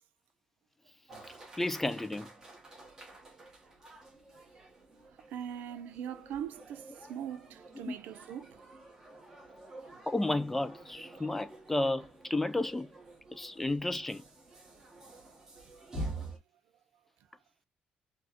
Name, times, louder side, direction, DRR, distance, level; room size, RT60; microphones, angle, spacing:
sound 1, 1.1-16.4, right 2 dB, 20° right, 1.2 m, -48 dB
voice 1, 1.6-2.3 7.8-7.9 10.1-12.9 13.3-14.2, left 2 dB, 10° left, 0.3 m, -32 dB
voice 2, 5.3-8.6, right 9 dB, 75° right, 0.6 m, -41 dB
4.2 x 2.2 x 2.9 m
cardioid pair, 160°, 3 cm